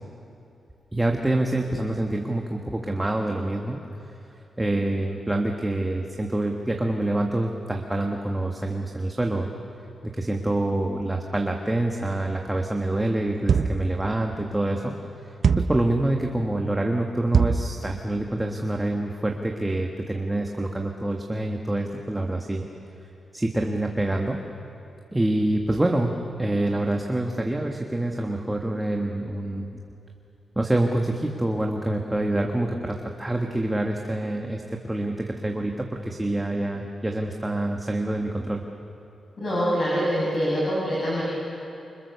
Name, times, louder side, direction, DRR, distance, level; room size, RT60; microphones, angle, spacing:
voice 1, 0.9-3.8 4.6-9.5 10.1-14.9 15.6-22.7 23.3-24.4 25.1-26.1 26.4-29.8 30.5-38.6, right 1 dB, 10° right, 2 dB, 1.5 m, -26 dB
sound 1, 13.5-13.9 15.4-15.8 17.3-17.7, right 6 dB, 55° right, 0.8 m, -21 dB
voice 2, 39.4-41.2, equal, 40° left, -7 dB, 7.4 m, -24 dB
28.5 x 25.5 x 6.9 m, 3.0 s
wide cardioid pair, 135°, 0 cm